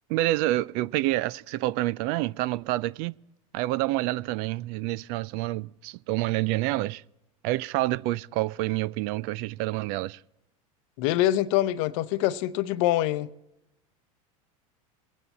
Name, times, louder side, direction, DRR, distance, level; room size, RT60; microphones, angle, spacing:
voice 1, 0.1-3.1 3.5-7.0 7.4-10.2, right 17 dB, 55° right, 0.4 m, -28 dB
voice 2, 11.0-13.3, left 14 dB, 60° left, 0.7 m, -25 dB
22.0 x 9.1 x 4.2 m
hypercardioid pair, 100°, 18 cm